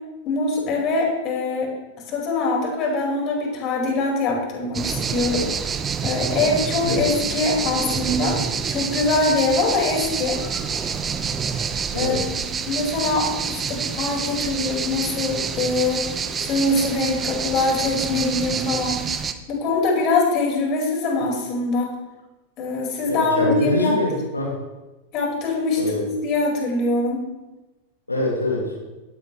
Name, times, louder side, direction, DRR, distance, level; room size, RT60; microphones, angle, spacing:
voice 1, 0.3-1.7 2.1-5.4 6.0-8.4 8.7-10.4 11.5-11.7 12.0-16.1 16.4-19.0 19.5-21.9 22.6-24.0 25.1-27.2, left 3 dB, 35° left, -1 dB, 5.2 m, -23 dB
sound 1, 4.7-19.3, right 6 dB, 20° right, 1.1 m, -27 dB
voice 2, 23.1-24.5 25.8-26.0 28.1-28.9, left 2 dB, 80° left, -2 dB, 2.4 m, -24 dB
17.0 x 15.0 x 3.3 m, 1.1 s
figure-of-eight pair, 90°, 0 cm